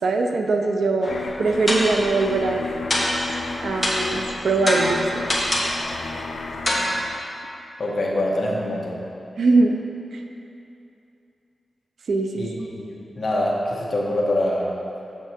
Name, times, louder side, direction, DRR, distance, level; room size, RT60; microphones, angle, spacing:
voice 1, 0.0-2.7 3.6-5.2 9.4-9.8 10.1-10.2 12.1-12.5, right 3 dB, 75° right, 3 dB, 0.6 m, -21 dB
sound 1, 1.0-1.3 1.7-2.1 2.9-3.4 3.8-4.2 4.7-5.8 6.7-6.9, left 1 dB, 10° left, 1.1 m, -24 dB
sound 2, 1.1-7.2, left 3 dB, 80° left, 0.6 m, -33 dB
voice 2, 7.8-9.0 12.4-14.7, left 1 dB, 40° left, -3 dB, 1.1 m, -25 dB
7.0 x 6.9 x 4.4 m, 2.8 s
wide cardioid pair, 170°, 0 cm